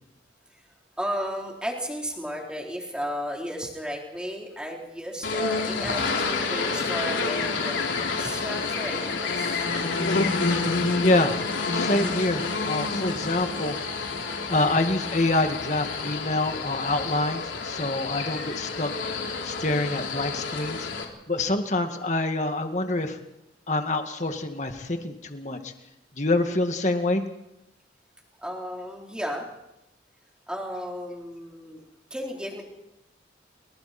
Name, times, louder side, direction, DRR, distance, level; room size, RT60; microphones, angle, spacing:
voice 1, 1.0-7.8 8.2-9.6 26.4-26.5 28.4-29.5 30.5-31.8 32.1-32.6, equal, 5° right, -1 dB, 4.0 m, -34 dB
sound 1, 5.2-21.0, left 4 dB, 85° left, 3.5 m, -28 dB
voice 2, 11.0-11.4 11.7-13.8 14.5-18.9 19.4-20.9 21.3-23.2 23.7-25.7 26.2-27.2, left 2 dB, 40° left, 5 dB, 2.1 m, -26 dB
28.5 x 24.5 x 4.4 m, 0.90 s
head